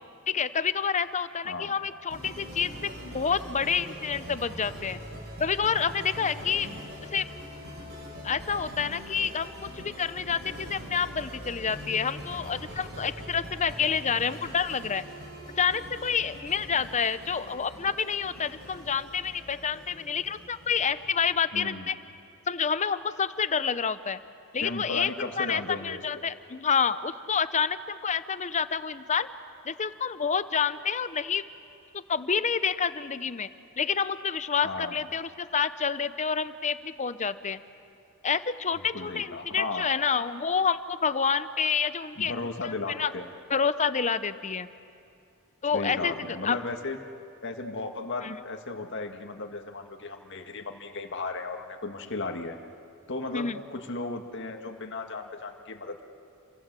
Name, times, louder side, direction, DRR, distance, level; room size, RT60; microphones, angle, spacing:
voice 1, 0.3-5.0 5.4-6.7 7.1-7.3 8.2-15.0 15.6-22.0 22.5-24.2 24.5-25.1 25.4-29.3 29.6-31.4 31.9-33.5 33.8-37.6 38.2-42.4 42.6-42.7 43.0-43.1 43.5-44.7 45.6-46.1 46.4-46.6 48.2-48.4 53.3-53.6, left 6 dB, 35° left, 14 dB, 0.8 m, -28 dB
voice 2, 1.4-1.8 6.4-6.8 21.5-21.9 24.6-26.2 34.6-35.0 38.9-39.9 42.2-43.3 45.7-47.0 47.4-52.6 53.1-56.0, left 3 dB, 60° left, 4 dB, 1.9 m, -35 dB
sound 1, 2.1-21.4, equal, 55° right, 6.5 m, -43 dB
29.5 x 23.5 x 7.6 m, 2.4 s
head